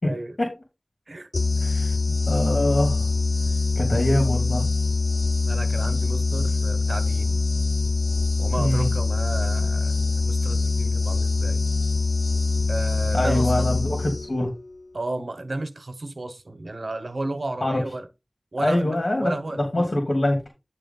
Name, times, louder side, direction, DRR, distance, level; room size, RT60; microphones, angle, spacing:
voice 1, 0.0-0.3 1.1-1.3 5.5-7.4 8.4-11.6 12.7-13.8 14.9-18.1 18.5-19.9, right 2 dB, 85° right, 1.2 m, -33 dB
sound 1, 1.3-14.5, left 3 dB, 85° left, 0.6 m, -23 dB
voice 2, 1.6-2.0 2.3-3.1 3.8-4.7 8.6-8.9 13.1-14.5 17.6-17.8 18.6-20.5, left 1 dB, 65° left, 2.6 m, -24 dB
9.8 x 3.3 x 5.5 m
wide cardioid pair, 55°, 0 cm